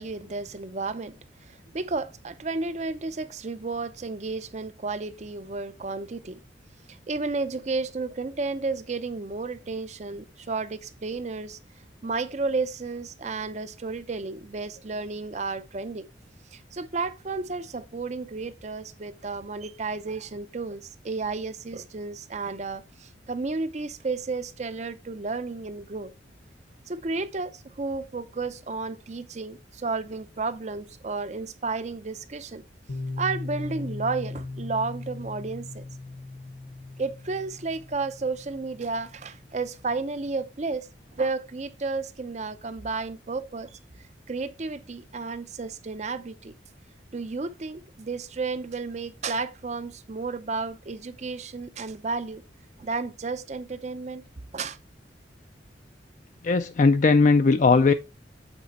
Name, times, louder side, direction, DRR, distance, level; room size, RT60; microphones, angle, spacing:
voice 1, 0.0-6.4 6.9-11.6 12.0-16.0 16.5-26.1 26.9-32.6 33.2-35.8 37.0-43.8 44.3-46.5 47.1-52.4 52.8-54.2 54.5-54.8, right 3 dB, 40° right, 0.5 m, -32 dB
Piano, 32.9-40.3, left 2 dB, 75° left, 1.2 m, -38 dB
voice 2, 56.4-57.9, left 4 dB, 40° left, 0.4 m, -18 dB
8.1 x 4.2 x 4.1 m
head